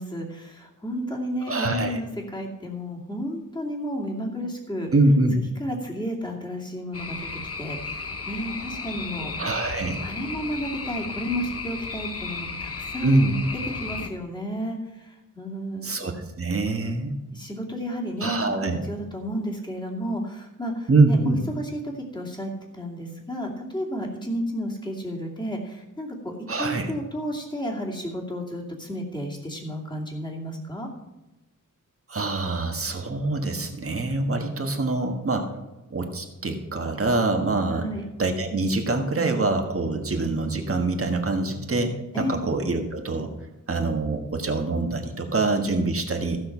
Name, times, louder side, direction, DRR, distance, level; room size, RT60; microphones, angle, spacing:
voice 1, 0.0-4.9 5.6-7.2 7.6-9.4 10.0-13.2 13.8-15.9 17.3-20.9 21.3-30.9 37.7-38.0 42.1-42.4, equal, 15° left, -1 dB, 2.5 m, -32 dB
voice 2, 1.5-2.0 4.9-5.4 9.4-10.0 13.0-13.4 15.8-17.1 18.2-18.8 20.9-21.4 26.5-26.9 32.1-35.6 35.9-37.8 38.2-43.3 43.7-46.4, right 2 dB, 45° right, 3 dB, 1.4 m, -24 dB
sound 1, 6.9-14.1, left 4 dB, 45° left, 1.0 m, -34 dB
15.0 x 6.3 x 6.0 m, 1.0 s
wide cardioid pair, 125°, 33 cm